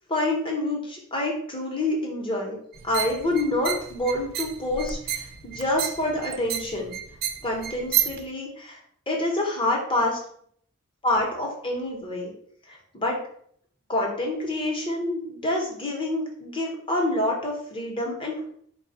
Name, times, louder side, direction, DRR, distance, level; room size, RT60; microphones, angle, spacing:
voice 1, 0.1-2.6 2.8-6.9 7.4-8.8 9.1-10.2 11.0-12.3 12.7-13.2 13.9-18.6, left 1 dB, 25° left, 0 dB, 1.0 m, -27 dB
sound 1, 2.7-8.2, right 10 dB, 50° right, 0.4 m, -31 dB
4.2 x 2.3 x 4.1 m, 0.63 s
head